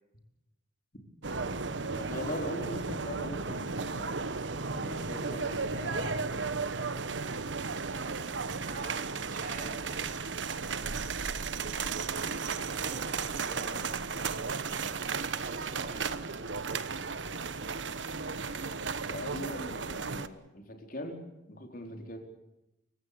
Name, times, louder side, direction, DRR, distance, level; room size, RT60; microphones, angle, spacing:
sound 1, 1.2-20.3, right 4 dB, 75° right, 1.1 m, -34 dB
voice 1, 1.8-4.4 4.7-6.6 10.6-11.0 19.1-21.2 21.5-22.2, left 1 dB, 50° left, 4 dB, 4.3 m, -41 dB
voice 2, 8.5-10.1 12.8-13.8 15.0-16.6, right 2 dB, 45° right, 4 dB, 4.2 m, -46 dB
29.5 x 16.5 x 7.0 m, 0.91 s
head